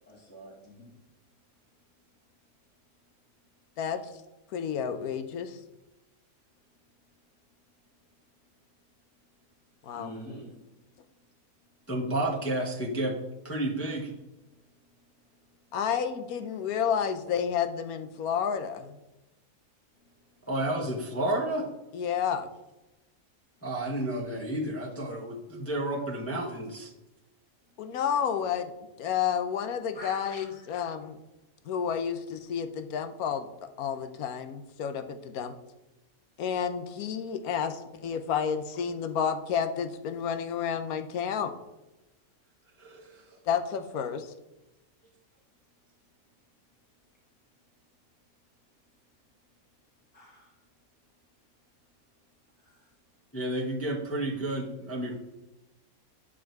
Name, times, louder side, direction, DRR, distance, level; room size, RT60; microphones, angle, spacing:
voice 1, 0.1-0.9 9.9-10.5 29.9-30.7 50.1-50.5 52.6-52.8, equal, 65° left, -9 dB, 2.8 m, -45 dB
voice 2, 4.5-5.6 9.8-10.1 15.7-19.0 21.9-22.5 27.8-28.7 29.0-31.2 31.6-33.5 33.8-35.6 36.4-41.5 43.5-44.3, left 7 dB, 85° left, 8 dB, 1.2 m, -30 dB
voice 3, 11.9-13.2 13.4-14.1 20.5-21.7 23.6-26.9 42.8-43.3 53.3-55.2, right 1 dB, 10° left, -2 dB, 1.0 m, -31 dB
8.4 x 5.0 x 4.6 m, 0.98 s
omnidirectional pair, 1.5 m